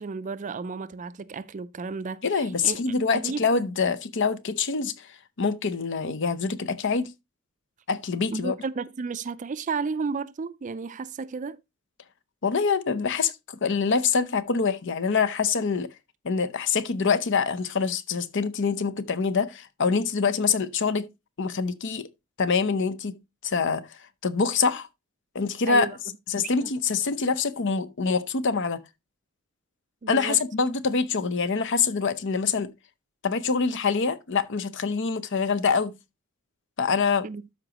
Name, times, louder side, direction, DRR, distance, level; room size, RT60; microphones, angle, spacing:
voice 1, 0.0-3.5 8.3-11.6 25.7-26.0 26.4-26.7 30.0-30.4 37.2-37.4, right 4 dB, 35° right, 0.4 m, -33 dB
voice 2, 2.2-5.1 5.4-7.1 7.9-8.6 12.4-13.3 13.6-15.9 16.2-21.1 21.4-22.1 22.4-23.2 23.4-24.0 24.2-24.9 25.3-25.9 26.3-28.8 30.1-32.7 33.2-35.9 36.8-37.2, left 5 dB, 60° left, 0.7 m, -25 dB
12.5 x 5.0 x 2.9 m
head